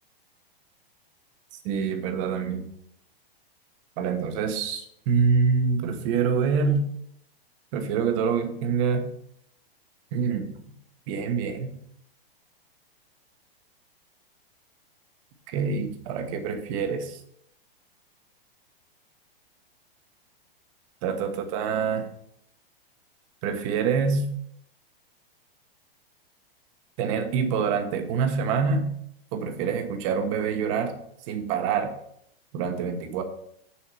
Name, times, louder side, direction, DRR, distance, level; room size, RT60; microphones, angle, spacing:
voice 1, 1.6-2.7 4.0-6.8 7.7-9.1 10.1-10.5 11.1-11.7 15.5-17.2 21.0-22.1 23.4-24.2 27.0-28.9 29.3-30.9 31.3-31.9 32.5-33.2, right 5 dB, 35° right, 6 dB, 1.1 m, -26 dB
7.2 x 5.7 x 6.2 m, 0.71 s
supercardioid pair, 165°, 30 cm